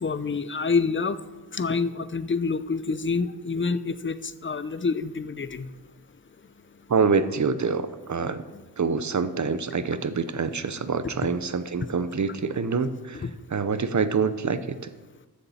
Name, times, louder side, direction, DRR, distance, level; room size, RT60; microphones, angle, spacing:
voice 1, 0.0-1.2 1.5-4.2 4.4-5.7 13.2-13.3, left 4 dB, 30° left, 13 dB, 0.5 m, -27 dB
voice 2, 6.9-8.4 8.8-14.9, right 5 dB, 45° right, 12 dB, 0.7 m, -26 dB
14.0 x 7.0 x 4.2 m, 1.2 s
wide cardioid pair, 110°, 41 cm